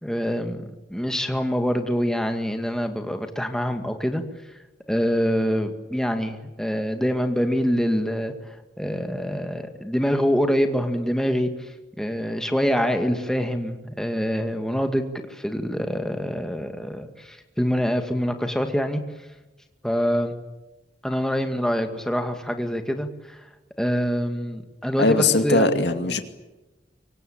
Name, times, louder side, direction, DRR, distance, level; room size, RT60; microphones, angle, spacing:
voice 1, 0.0-0.6 0.9-4.2 4.9-8.3 8.8-11.7 12.0-19.0 19.8-20.3 21.0-23.4 23.8-26.2, equal, 5° left, 5 dB, 2.1 m, -25 dB
voice 2, 25.0-26.2, left 2 dB, 65° left, 7 dB, 2.5 m, -20 dB
24.5 x 24.0 x 8.9 m, 1.1 s
head